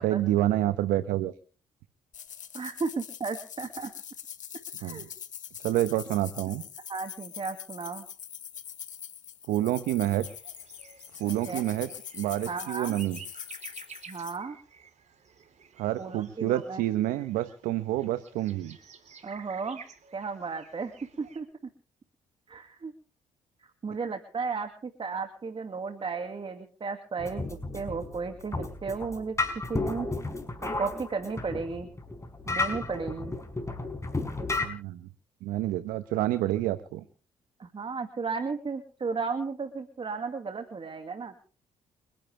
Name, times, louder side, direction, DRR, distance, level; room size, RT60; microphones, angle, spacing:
voice 1, 0.0-1.3 4.8-5.1 5.6-6.6 9.5-10.3 11.2-13.2 15.8-18.8 34.6-35.1 35.4-37.0, right 14 dB, 85° right, 11 dB, 1.1 m, -28 dB
sound 1, 2.1-14.4, left 9 dB, 60° left, 2.1 m, -43 dB
voice 2, 2.5-3.9 4.8-5.1 6.9-8.1 11.2-11.6 12.5-13.0 14.1-14.6 16.0-16.8 19.2-19.8 20.1-20.9 21.2-21.5 22.5-22.9 23.8-29.4 29.7-30.1 30.8-31.9 32.5-33.4 37.6-41.3, right 4 dB, 40° right, 6 dB, 2.3 m, -34 dB
sound 2, 10.1-21.4, right 6 dB, 55° right, 4.0 m, -52 dB
sound 3, 27.2-34.7, left 3 dB, 20° left, 5.2 m, -33 dB
29.5 x 11.0 x 3.4 m, 0.40 s
supercardioid pair, 60°, 14 cm